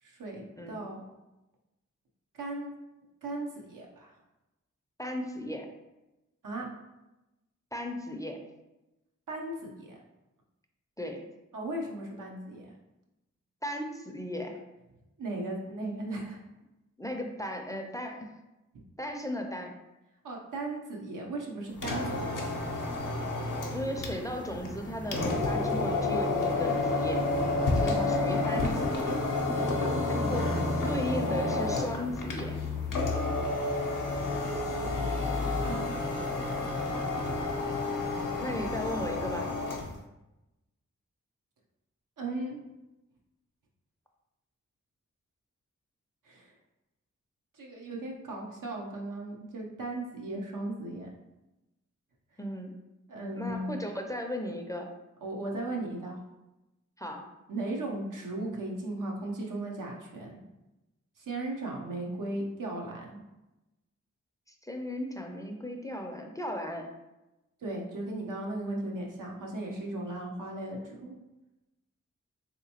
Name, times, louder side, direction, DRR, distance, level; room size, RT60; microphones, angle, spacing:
voice 1, 0.0-1.0 2.3-2.7 3.2-4.1 6.4-6.7 9.3-10.0 11.5-12.7 15.2-16.4 20.2-22.5 29.5-30.5 35.6-36.0 42.2-42.6 46.3-46.5 47.5-51.1 53.1-53.8 55.2-56.2 57.5-60.4 61.2-63.2 67.6-71.2, right 2 dB, 85° right, -1 dB, 0.7 m, -37 dB
voice 2, 5.0-5.7 7.7-8.4 11.0-11.3 13.6-14.6 17.0-18.3 19.0-19.7 23.7-27.2 27.7-29.2 30.1-30.5 30.8-32.5 38.4-39.5 52.4-52.7 53.3-54.9 57.0-57.2 64.5-66.9, left 1 dB, 10° left, 3 dB, 0.4 m, -36 dB
sound 1, 21.7-40.0, left 2 dB, 85° left, 0.6 m, -30 dB
3.3 x 2.9 x 2.8 m, 0.98 s
cardioid pair, 60°, 31 cm